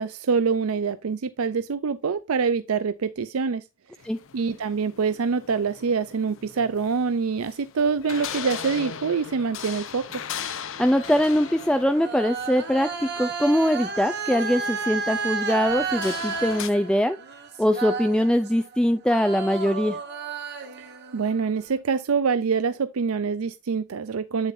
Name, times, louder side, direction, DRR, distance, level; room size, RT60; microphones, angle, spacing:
voice 1, 0.0-3.6 4.3-10.0 20.8-24.5, right 5 dB, 85° right, 0.5 m, -25 dB
sound 1, 4.0-16.7, left 8 dB, 65° left, 0.7 m, -39 dB
sound 2, 10.1-18.8 19.1-21.7, right 5 dB, 55° right, 1.4 m, -33 dB
voice 2, 10.8-17.2 17.6-20.0, equal, 5° left, 0.4 m, -22 dB
8.5 x 8.0 x 2.6 m
head